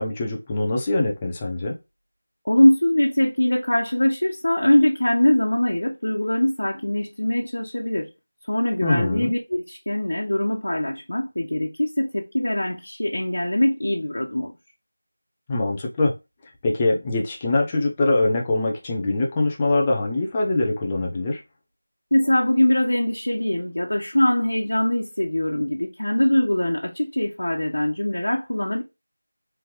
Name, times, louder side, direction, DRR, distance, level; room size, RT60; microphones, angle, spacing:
voice 1, 0.0-1.7 8.8-9.3 15.5-16.1 16.6-21.4, left 2 dB, 15° left, 0.7 m, -23 dB
voice 2, 2.4-8.1 8.5-14.5 22.1-28.8, left 1 dB, 80° left, 1.1 m, -22 dB
4.4 x 3.4 x 3.1 m
figure-of-eight pair, 175°, 0 cm